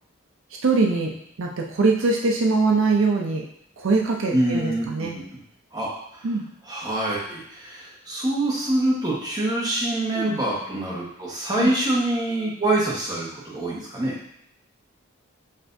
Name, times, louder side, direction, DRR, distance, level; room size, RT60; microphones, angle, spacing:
voice 1, 0.6-1.1 1.4-3.4 3.8-5.2 6.2-6.4 10.1-10.3 11.6-11.7, right 3 dB, 75° right, 0 dB, 0.5 m, -22 dB
voice 2, 4.3-5.4 5.7-5.9 6.1-6.3 6.7-14.2, right 1 dB, 20° right, -5 dB, 1.1 m, -25 dB
6.4 x 2.6 x 2.6 m, 0.73 s
head